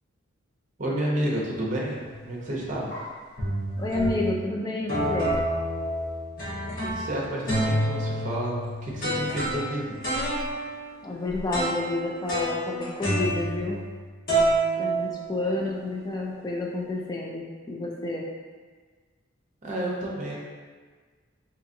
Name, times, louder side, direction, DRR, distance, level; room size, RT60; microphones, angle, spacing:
voice 1, 0.8-2.0 2.2-2.9 6.8-10.0 19.6-20.4, right 1 dB, 40° right, -4 dB, 0.7 m, -30 dB
sound 1, 1.9-2.3 2.9-3.0 3.4-4.4 4.9-7.1 7.5-14.0 14.3-15.7, right 1 dB, 45° left, 1.1 m, -28 dB
voice 2, 3.8-5.4 11.0-13.8 14.8-18.2, left 2 dB, 20° left, -2 dB, 0.4 m, -30 dB
3.9 x 2.8 x 2.6 m, 1.5 s
head